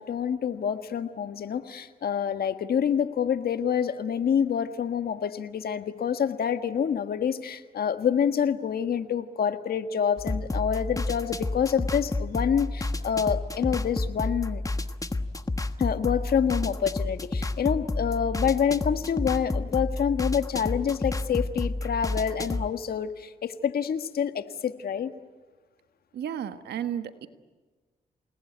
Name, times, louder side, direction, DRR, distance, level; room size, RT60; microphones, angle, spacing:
voice 1, 0.0-14.6 15.8-25.1, left 8 dB, 65° left, 1.6 m, -27 dB
sound 1, 10.2-22.7, left 2 dB, 20° left, 1.3 m, -30 dB
voice 2, 26.1-27.3, right 9 dB, 80° right, 1.5 m, -33 dB
28.5 x 19.5 x 9.4 m
cardioid pair, 65°, 17 cm